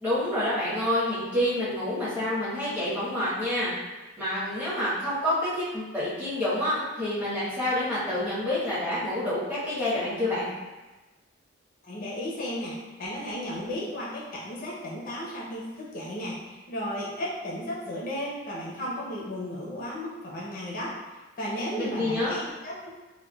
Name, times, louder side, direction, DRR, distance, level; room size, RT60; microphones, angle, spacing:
voice 1, 0.0-3.7 4.2-10.5 21.6-22.3, left 1 dB, 10° right, -11 dB, 0.9 m, -28 dB
voice 2, 11.8-21.0 21.4-22.9, equal, 45° left, -5 dB, 0.5 m, -34 dB
3.1 x 2.2 x 2.2 m, 1.2 s
head